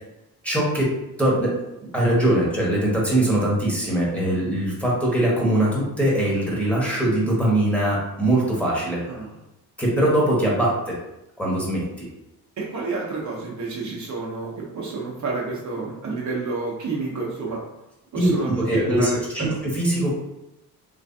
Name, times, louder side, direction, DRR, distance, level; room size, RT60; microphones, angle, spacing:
voice 1, 0.4-0.9 1.2-1.5 1.9-9.0 9.8-11.0 11.4-12.1 18.1-19.5 19.7-20.1, right 1 dB, 5° left, -6 dB, 1.3 m, -21 dB
voice 2, 12.6-17.6 18.1-19.6, right 4 dB, 50° right, -3 dB, 0.8 m, -29 dB
3.4 x 3.1 x 2.7 m, 0.94 s
cardioid pair, 100°, 38 cm